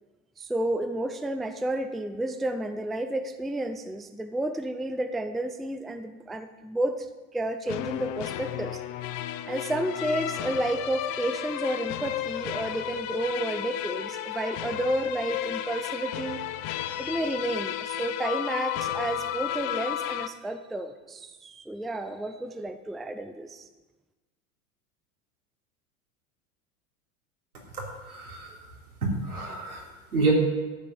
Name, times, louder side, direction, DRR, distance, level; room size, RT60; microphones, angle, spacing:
voice 1, 0.4-7.1 7.3-8.8 9.5-16.4 17.0-23.6, right 1 dB, ahead, 9 dB, 0.4 m, -31 dB
sound 1, 7.7-20.3, left 12 dB, 45° left, 0.8 m, -33 dB
voice 2, 27.7-28.6 29.0-29.8 30.1-30.3, right 3 dB, 85° right, -2 dB, 3.5 m, -28 dB
13.0 x 7.6 x 6.9 m, 1.2 s
hypercardioid pair, 85°, 43 cm